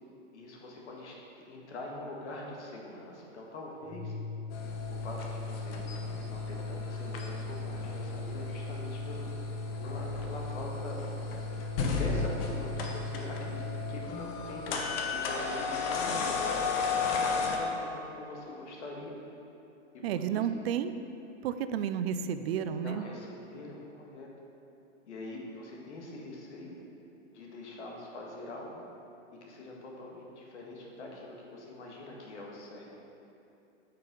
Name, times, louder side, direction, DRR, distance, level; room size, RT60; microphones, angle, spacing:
voice 1, 0.3-1.1 1.4-4.1 4.9-5.8 6.3-11.0 11.9-14.8 15.1-19.1 19.9-20.5 22.8-24.3 25.0-26.7 27.3-28.8 29.4-32.9, left 2 dB, 70° left, -1 dB, 1.7 m, -43 dB
Organ, 3.8-14.2, left 2 dB, ahead, 0.4 m, -38 dB
sound 1, 4.5-17.6, left 5 dB, 50° left, 1.1 m, -35 dB
voice 2, 20.0-20.9 21.4-23.0, right 8 dB, 55° right, 11 dB, 0.5 m, -31 dB
8.7 x 5.7 x 3.8 m, 2.8 s
hypercardioid pair, 110°, 37 cm